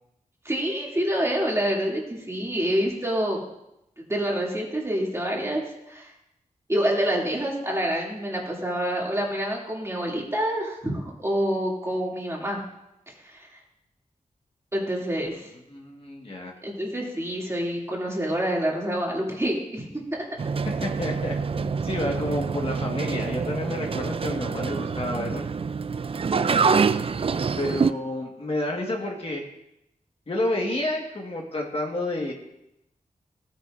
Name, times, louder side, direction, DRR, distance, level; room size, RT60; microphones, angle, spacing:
voice 1, 0.4-3.4 4.1-6.1 6.7-12.6 14.7-15.5 16.6-19.9 20.1-20.3, equal, 20° right, -3 dB, 2.5 m, -27 dB
voice 2, 15.7-16.5 20.8-25.4 27.6-29.4 30.3-32.3, left 1 dB, 40° left, 0 dB, 1.5 m, -30 dB
sound 1, 20.4-27.9, right 5 dB, 40° right, 0.4 m, -26 dB
16.0 x 9.1 x 2.5 m, 0.85 s
wide cardioid pair, 105°, 15 cm